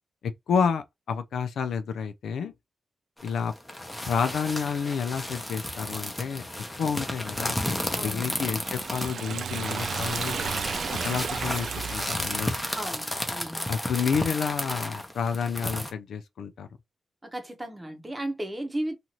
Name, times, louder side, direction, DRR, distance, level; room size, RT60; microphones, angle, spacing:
voice 1, 0.2-2.5 3.2-3.5 4.1-6.4 6.8-10.4 11.0-12.5 13.7-16.7, left 6 dB, 85° left, 0.4 m, -30 dB
sound 1, 3.2-15.9, left 1 dB, 10° left, 0.7 m, -33 dB
voice 2, 7.9-8.4 12.7-13.6 17.2-19.0, right 1 dB, 20° right, 0.8 m, -35 dB
Liquid, 8.2-12.9, right 6 dB, 65° right, 0.4 m, -34 dB
2.7 x 2.5 x 3.0 m
cardioid pair, 100°, 0 cm